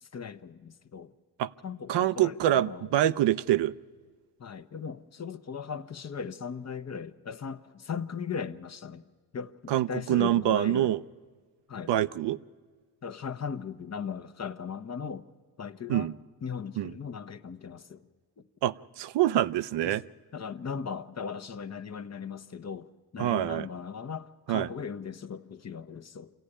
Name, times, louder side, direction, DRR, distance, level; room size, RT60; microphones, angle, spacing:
voice 1, 0.0-1.1 1.6-2.9 4.4-9.0 9.3-10.9 11.7-11.9 13.0-15.3 15.6-16.1 16.4-18.0 19.9-20.0 20.3-26.3, left 6 dB, 40° left, 0.9 m, -38 dB
voice 2, 1.9-3.7 9.7-11.0 11.9-12.4 15.9-16.1 16.8-16.9 18.6-20.0 23.2-23.7 24.5-24.7, right 12 dB, 90° right, 0.6 m, -26 dB
26.5 x 15.0 x 10.0 m
cardioid pair, 90°, 41 cm